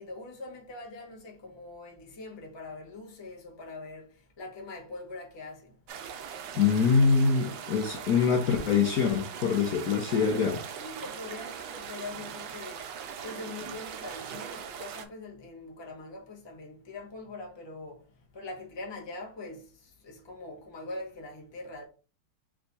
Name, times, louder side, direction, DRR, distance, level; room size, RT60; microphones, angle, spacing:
voice 1, 0.0-5.8 10.6-12.9 13.2-21.8, left 2 dB, 25° left, 0.6 m, -43 dB
sound 1, 5.9-15.0, right 7 dB, 70° right, 1.2 m, -40 dB
voice 2, 6.5-10.6, left 5 dB, 70° left, 0.9 m, -24 dB
3.5 x 3.2 x 4.0 m
omnidirectional pair, 2.3 m